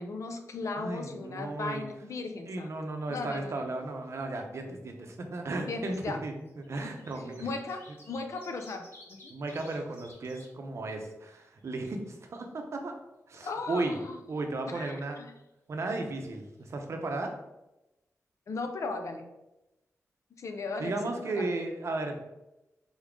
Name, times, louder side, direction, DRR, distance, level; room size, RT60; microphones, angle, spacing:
voice 1, 0.0-2.7 3.1-3.6 5.6-6.2 6.8-6.9 7.4-8.8 9.1-9.3 13.4-14.2 14.6-15.3 18.5-19.3 20.4-20.9 21.3-21.5, left 3 dB, 65° left, 6 dB, 0.5 m, -37 dB
voice 2, 0.8-1.8 2.5-6.0 6.2-7.4 9.3-12.9 13.3-14.0 14.3-15.2 15.7-17.3 20.8-22.2, right 2 dB, 55° right, 4 dB, 0.6 m, -35 dB
sound 1, 3.0-3.8 4.0-4.1 5.2-5.4 6.3-10.5 10.9-11.0 11.3-12.4 16.2-16.3 16.6-16.7, left 1 dB, 45° left, 1.0 m, -55 dB
3.8 x 3.6 x 3.6 m, 0.96 s
wide cardioid pair, 160°, 6 cm